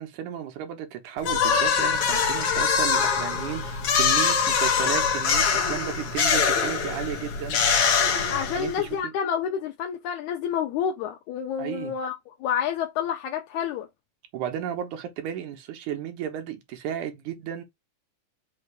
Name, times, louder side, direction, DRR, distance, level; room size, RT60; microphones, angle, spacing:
voice 1, 0.0-7.6 8.5-8.9 11.6-11.9 14.3-17.6, right 10 dB, 80° right, 2.5 m, -34 dB
sound 1, 1.2-8.9, left 6 dB, 60° left, 1.7 m, -23 dB
voice 2, 8.3-13.9, left 8 dB, 80° left, 2.1 m, -29 dB
5.7 x 2.5 x 3.3 m
omnidirectional pair, 3.5 m